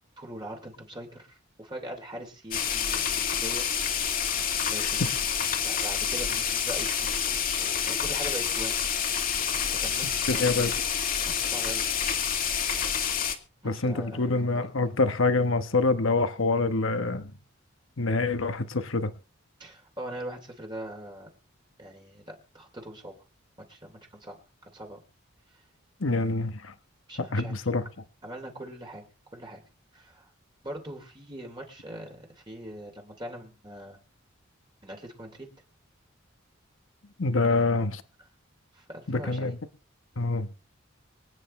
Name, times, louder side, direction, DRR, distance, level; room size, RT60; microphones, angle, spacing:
voice 1, 0.2-3.7 4.7-5.1 5.6-8.7 9.1-9.5 9.8-10.8 11.2-11.9 13.6-14.7 19.6-21.3 21.8-23.2 23.7-24.4 24.6-25.0 25.5-25.6 26.2-26.3 27.1-27.6 28.2-29.0 29.3-29.6 29.9-30.3 30.6-34.0 34.8-35.5 37.4-37.6 38.2-38.3 38.7-39.6, right 1 dB, 25° right, 2.9 m, -42 dB
sound 1, 2.5-13.4, left 7 dB, 45° left, 2.0 m, -28 dB
voice 2, 4.8-5.1 10.0-10.7 13.6-17.3 18.0-19.1 26.0-26.7 27.3-27.8 37.2-37.9 39.1-39.5 40.2-40.5, left 3 dB, 75° left, 1.1 m, -26 dB
25.0 x 9.4 x 3.2 m
head